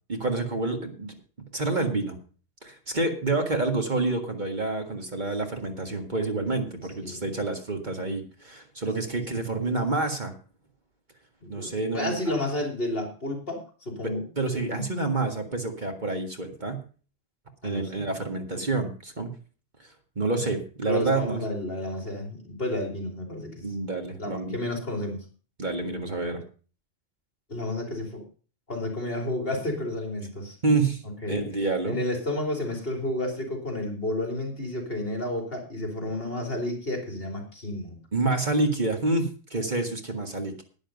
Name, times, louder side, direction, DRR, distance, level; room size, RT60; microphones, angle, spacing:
voice 1, 0.1-1.1 1.5-2.2 2.6-10.3 11.5-12.2 14.0-16.8 17.6-19.3 19.8-21.4 23.6-24.6 25.6-26.4 30.6-31.0 31.3-32.0 38.1-40.6, right 3 dB, 40° right, 4 dB, 1.9 m, -28 dB
voice 2, 7.0-7.3 11.4-14.3 14.5-14.8 17.6-18.1 18.6-18.7 20.4-20.5 20.9-23.7 24.2-25.2 27.5-28.2 28.7-30.6 31.2-31.4 31.9-38.0, left 1 dB, 50° left, 3 dB, 3.5 m, -31 dB
11.0 x 10.0 x 5.3 m, 0.38 s
omnidirectional pair, 1.2 m